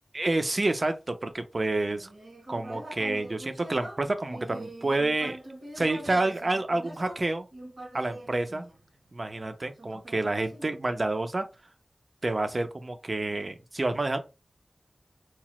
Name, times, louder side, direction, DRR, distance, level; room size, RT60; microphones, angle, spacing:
voice 1, 0.1-2.1 2.5-5.4 5.8-7.5 7.9-8.6 9.1-11.5 12.2-14.2, right 2 dB, 45° right, 0.5 m, -28 dB
Human voice, 1.8-9.2 9.8-11.2, right 1 dB, 80° right, 1.0 m, -44 dB
2.8 x 2.0 x 3.0 m
wide cardioid pair, 75°, 0 cm